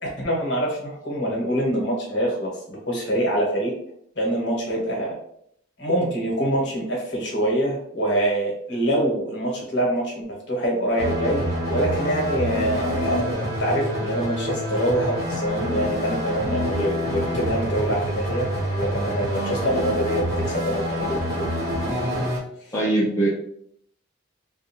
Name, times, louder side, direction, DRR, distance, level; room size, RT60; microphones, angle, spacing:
voice 1, 0.0-3.7 4.2-5.2 5.8-21.4 22.7-22.8, right 1 dB, 55° left, -2 dB, 0.9 m, -25 dB
sound 1, 11.0-22.4, equal, 50° right, 0.9 m, -27 dB
voice 2, 22.7-23.3, right 2 dB, 15° left, -6 dB, 0.4 m, -21 dB
2.4 x 2.3 x 2.9 m, 0.68 s
head